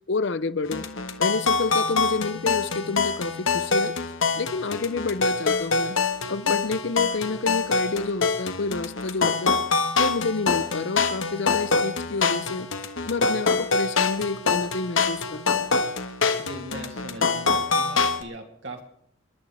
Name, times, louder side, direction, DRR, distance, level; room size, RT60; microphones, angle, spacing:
voice 1, 0.1-0.9 1.2-3.9 4.3-6.0 6.3-9.6 10.0-12.7 13.0-15.7, left 3 dB, 60° left, 0.7 m, -29 dB
sound 1, 0.7-18.2, left 4 dB, 75° left, 1.5 m, -25 dB
voice 2, 16.4-18.8, right 1 dB, 60° right, 2.6 m, -40 dB
29.0 x 11.5 x 3.4 m
head